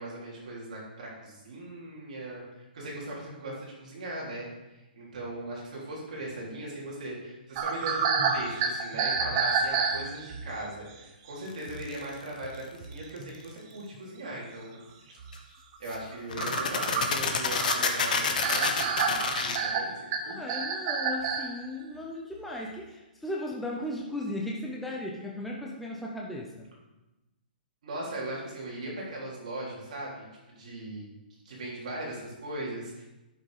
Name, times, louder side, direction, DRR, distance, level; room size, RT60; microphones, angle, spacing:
voice 1, 0.0-15.2 15.8-20.4 27.8-31.1 31.5-33.0, right 1 dB, 45° right, -4 dB, 3.5 m, -39 dB
sound 1, 7.5-10.5 11.3-11.4 11.7-11.9 12.4-12.5 12.8-13.3 13.9-14.0 14.3-14.4 15.2-15.3 15.7-21.5, right 5 dB, 25° right, 0.8 m, -29 dB
sound 2, 11.8-12.1 15.3-15.4 15.9-16.0 16.3-19.6, left 5 dB, 55° left, 1.2 m, -28 dB
voice 2, 20.2-26.7, left 1 dB, ahead, -3 dB, 0.6 m, -36 dB
11.5 x 6.4 x 5.0 m, 1.0 s
hypercardioid pair, 175°, 5 cm